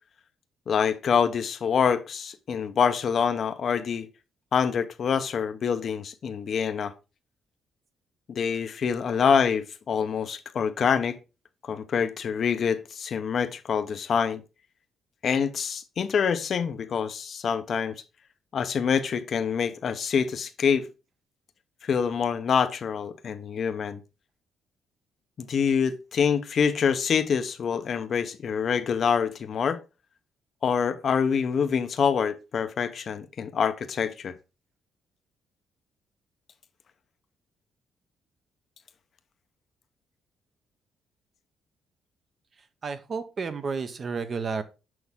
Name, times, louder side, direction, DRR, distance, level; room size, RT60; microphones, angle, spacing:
voice 1, 0.7-4.1 4.5-6.9 8.3-11.2 11.6-14.4 15.2-18.0 18.5-20.9 21.8-24.0 25.4-29.8 30.6-34.3, left 6 dB, 55° left, 0.8 m, -26 dB
voice 2, 42.6-44.6, right 5 dB, 45° right, 1.0 m, -32 dB
6.3 x 6.1 x 3.6 m
cardioid pair, 90°, 0 cm